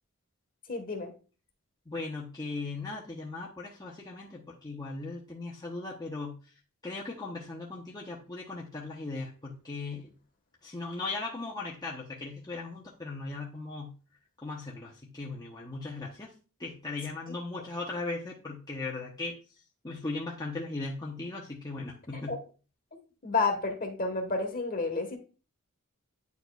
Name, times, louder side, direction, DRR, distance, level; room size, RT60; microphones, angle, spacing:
voice 1, 0.7-1.1 22.1-22.4 23.2-25.2, left 3 dB, 40° left, 3 dB, 1.3 m, -30 dB
voice 2, 1.9-6.4 6.8-10.1 10.6-13.9 14.4-16.3 16.6-19.4 19.8-22.4, left 3 dB, 20° left, -3 dB, 0.8 m, -38 dB
9.4 x 4.4 x 2.3 m, 0.36 s
head